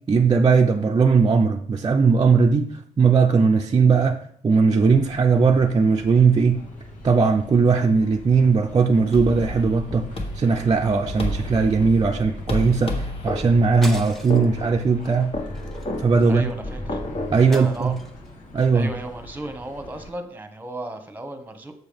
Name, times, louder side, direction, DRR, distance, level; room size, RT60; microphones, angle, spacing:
voice 1, 0.1-2.7 3.0-6.6 7.0-10.1 10.3-15.3 16.0-16.4 17.3-17.9 18.5-18.9, right 5 dB, 30° right, 0.5 m, -18 dB
sound 1, 4.7-20.1, left 1 dB, 80° left, 2.1 m, -42 dB
sound 2, 9.1-17.4, left 1 dB, 45° left, 1.7 m, -31 dB
sound 3, 13.8-14.6 15.0-15.2 15.5-16.5 17.5-18.3, equal, ahead, 0.9 m, -39 dB
voice 2, 16.3-17.0 17.5-17.9 18.7-21.7, right 1 dB, 15° right, 1.2 m, -34 dB
6.9 x 6.5 x 5.2 m
cardioid pair, 120°, 13 cm